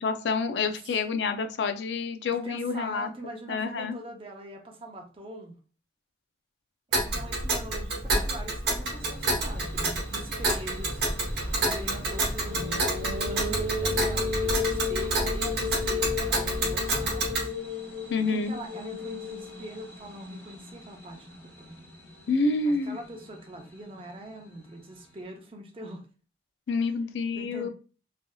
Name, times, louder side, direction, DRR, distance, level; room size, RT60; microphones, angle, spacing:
voice 1, 0.0-3.1 3.5-4.0 18.1-18.6 22.3-23.0 26.7-27.7, left 4 dB, 70° left, 8 dB, 0.4 m, -28 dB
voice 2, 2.3-5.6 6.9-17.5 18.2-21.9 22.7-26.0 27.4-27.7, right 1 dB, 30° right, 2 dB, 0.6 m, -43 dB
Tick, 6.9-17.5, right 2 dB, 60° right, 1.1 m, -29 dB
sound 1, 8.9-25.2, equal, 10° left, 0.9 m, -48 dB
sound 2, 12.5-19.9, left 5 dB, 90° right, 0.5 m, -33 dB
3.3 x 2.6 x 2.2 m, 0.37 s
head